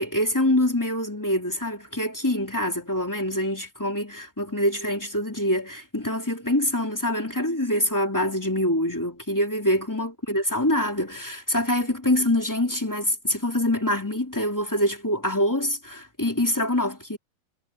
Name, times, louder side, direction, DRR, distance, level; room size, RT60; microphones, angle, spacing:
voice 1, 0.0-17.2, left 1 dB, 5° left, 2.3 m, -25 dB
omnidirectional pair, 4.4 m